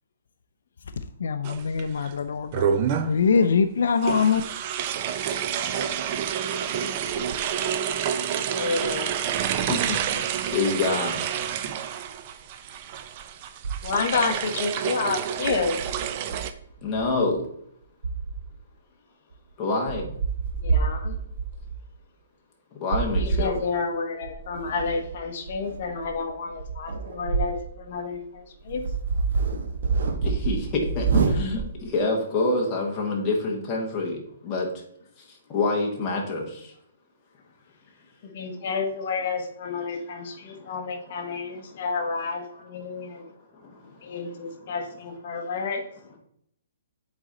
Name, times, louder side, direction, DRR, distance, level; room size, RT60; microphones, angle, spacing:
voice 1, 1.2-2.7 3.1-4.4, left 5 dB, 70° left, 9 dB, 0.4 m, -23 dB
sound 1, 1.4-2.1 2.5-3.2 4.0-16.5, right 8 dB, 25° right, 0.3 m, -28 dB
voice 2, 8.4-9.1 13.8-15.8 20.6-21.2 23.2-28.9 38.2-43.3 44.0-45.8, left 4 dB, 35° left, 4 dB, 1.0 m, -30 dB
voice 3, 9.7-10.3 10.5-11.2 16.8-17.4 19.6-20.1 22.8-23.5 30.2-34.7 35.5-36.7 43.6-43.9, left 3 dB, 15° left, -2 dB, 1.1 m, -27 dB
sound 2, 13.6-14.2 15.4-17.4 18.0-18.6 19.3-19.4 19.9-21.8 22.9-23.5 24.2-27.7 28.1-28.2 28.6-31.8, right 4 dB, 50° right, 0.9 m, -28 dB
7.9 x 4.1 x 3.8 m, 0.70 s
hypercardioid pair, 180°, 0 cm